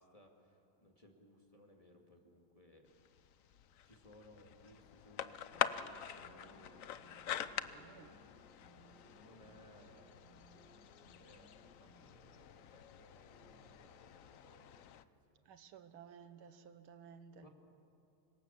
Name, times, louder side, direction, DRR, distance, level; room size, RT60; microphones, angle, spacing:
voice 1, 0.0-3.3 3.8-8.3 8.8-10.2 11.2-15.4 17.4-17.5, left 1 dB, 15° left, 1 dB, 2.4 m, -64 dB
sound 1, 2.9-15.0, left 10 dB, 80° left, 0.7 m, -45 dB
sound 2, 5.5-14.8, right 5 dB, 60° right, 2.3 m, -66 dB
voice 2, 7.7-8.1 15.5-17.5, right 7 dB, 85° right, 10 dB, 1.9 m, -56 dB
25.5 x 23.0 x 7.4 m, 2.9 s
omnidirectional pair, 2.2 m